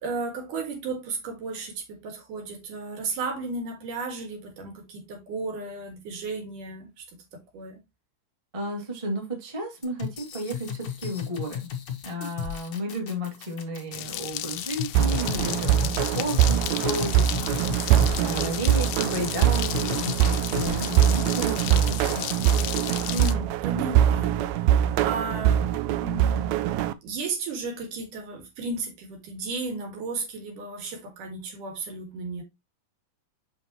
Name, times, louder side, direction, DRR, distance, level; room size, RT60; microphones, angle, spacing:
voice 1, 0.0-7.8 23.1-32.4, right 3 dB, 70° right, 3.2 m, -34 dB
voice 2, 8.5-11.7 12.0-22.2, equal, 15° right, 1.4 m, -33 dB
sound 1, 9.8-20.2 20.6-20.8, left 8 dB, 65° left, 1.0 m, -35 dB
sound 2, 13.9-23.3, left 14 dB, 90° left, 2.3 m, -34 dB
sound 3, 15.0-26.9, right 11 dB, 90° right, 1.6 m, -23 dB
6.4 x 6.1 x 3.0 m
omnidirectional pair, 3.8 m